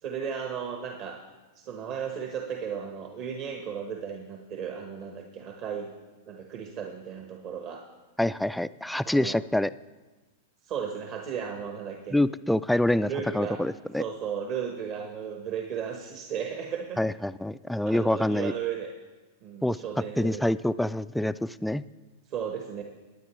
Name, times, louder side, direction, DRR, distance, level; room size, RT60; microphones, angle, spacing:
voice 1, 0.0-1.2 1.5-5.9 6.3-7.8 9.0-9.4 10.6-12.2 13.0-13.6 14.0-17.0 17.8-18.9 19.4-20.4 22.3-22.8, right 7 dB, 45° right, 3 dB, 1.1 m, -35 dB
voice 2, 8.2-9.7 12.1-14.0 17.0-18.5 19.6-19.8 20.2-21.8, left 1 dB, 5° left, 15 dB, 0.3 m, -26 dB
19.5 x 9.4 x 3.1 m, 1.2 s
hypercardioid pair, 100°, 0 cm